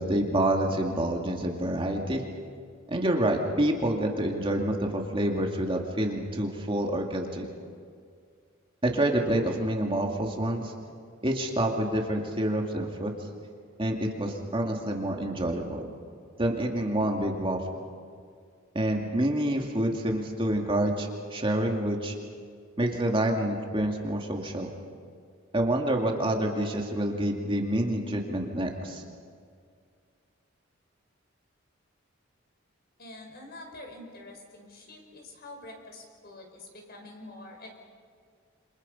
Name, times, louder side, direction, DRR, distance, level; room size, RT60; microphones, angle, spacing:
voice 1, 0.0-2.2 2.9-7.5 8.8-10.7 11.2-13.1 13.8-15.8 16.4-17.6 18.7-22.1 22.8-24.7 25.5-29.0, right 1 dB, 25° right, 1 dB, 2.4 m, -27 dB
voice 2, 33.0-37.8, left 2 dB, 50° left, 2 dB, 5.4 m, -46 dB
28.5 x 26.0 x 5.6 m, 2.1 s
head